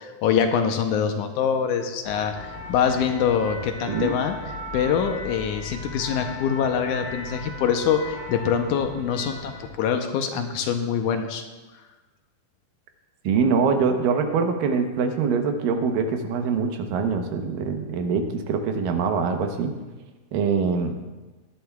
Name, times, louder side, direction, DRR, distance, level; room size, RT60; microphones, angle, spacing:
voice 1, 0.0-4.4 4.7-11.4, left 7 dB, 75° left, 5 dB, 2.1 m, -24 dB
sound 1, 2.0-9.7, left 2 dB, ahead, 2.4 m, -37 dB
voice 2, 13.3-19.7 20.3-21.0, right 5 dB, 85° right, 5 dB, 2.7 m, -24 dB
18.0 x 11.5 x 2.3 m, 1.2 s
omnidirectional pair, 3.8 m